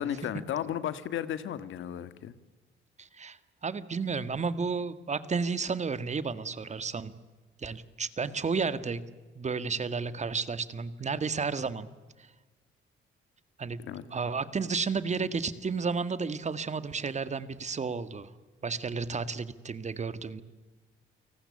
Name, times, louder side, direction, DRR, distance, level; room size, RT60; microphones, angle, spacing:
voice 1, 0.0-2.3 13.8-14.0, left 10 dB, 75° left, 13 dB, 1.8 m, -34 dB
voice 2, 3.0-7.1 7.6-9.0 9.4-11.9 13.6-13.8 14.1-18.3 18.6-20.4, right 5 dB, 35° right, 13 dB, 1.8 m, -32 dB
29.5 x 19.0 x 9.8 m, 1.3 s
cardioid pair, 90°, 20 cm